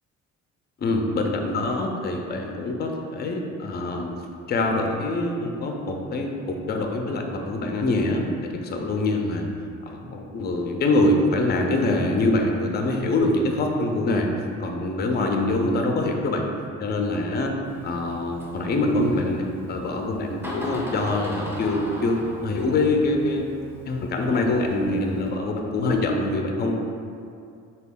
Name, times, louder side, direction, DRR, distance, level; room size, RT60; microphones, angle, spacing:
voice 1, 0.8-4.1 4.5-9.5 9.9-14.3 14.6-16.5 16.8-17.5 17.8-23.4 23.9-26.8, left 2 dB, 35° left, 2 dB, 0.4 m, -24 dB
Door, 17.6-25.3, equal, 5° right, 0.6 m, -39 dB
3.3 x 2.3 x 3.5 m, 2.4 s
cardioid pair, 90°, 30 cm